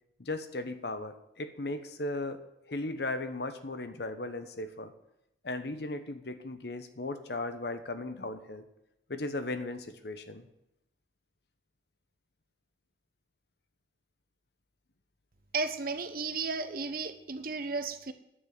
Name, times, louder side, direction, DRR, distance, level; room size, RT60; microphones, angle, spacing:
voice 1, 0.2-2.4 2.7-4.9 5.4-8.6 9.1-10.4, left 2 dB, 60° left, 10 dB, 1.1 m, -36 dB
voice 2, 15.5-18.1, right 4 dB, 50° right, 10 dB, 1.0 m, -34 dB
10.0 x 7.4 x 9.5 m, 0.85 s
head